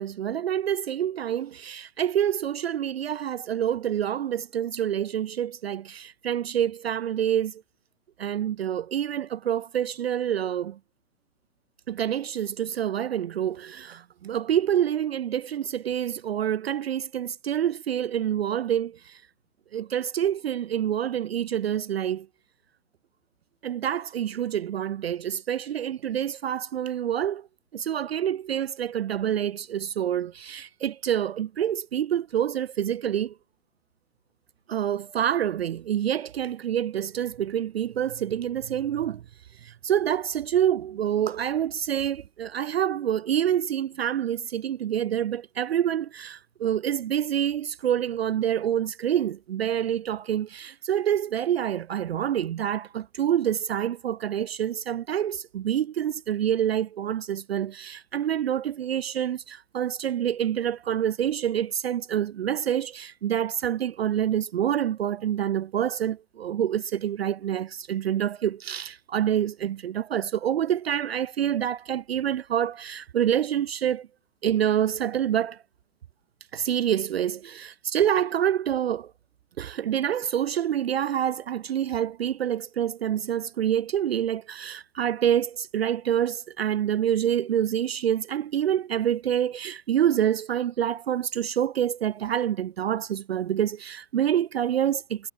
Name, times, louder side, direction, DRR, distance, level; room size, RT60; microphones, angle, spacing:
voice 1, 0.0-7.6 8.2-10.8 11.9-19.2 19.7-22.3 23.6-27.5 27.7-33.3 34.7-39.2 39.6-74.1 74.4-75.6 76.5-79.1 79.6-95.3, right 10 dB, 45° right, 0.6 m, -27 dB
hypercardioid pair, 140°, 45 cm